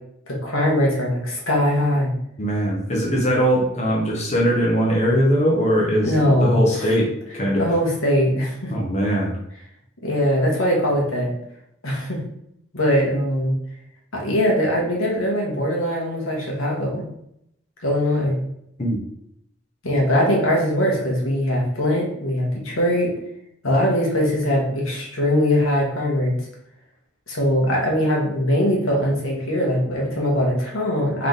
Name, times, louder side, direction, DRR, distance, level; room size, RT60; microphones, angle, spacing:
voice 1, 0.3-2.1 6.0-6.9 7.6-8.7 10.0-11.3 11.8-12.2 12.7-13.6 14.1-17.0 17.8-18.4 19.8-23.1 23.6-26.3 27.3-31.3, equal, 90° left, -2 dB, 1.5 m, -21 dB
voice 2, 2.4-7.7 8.7-9.3 18.8-19.0, equal, 35° left, -2 dB, 0.8 m, -21 dB
3.7 x 3.3 x 3.9 m, 0.75 s
head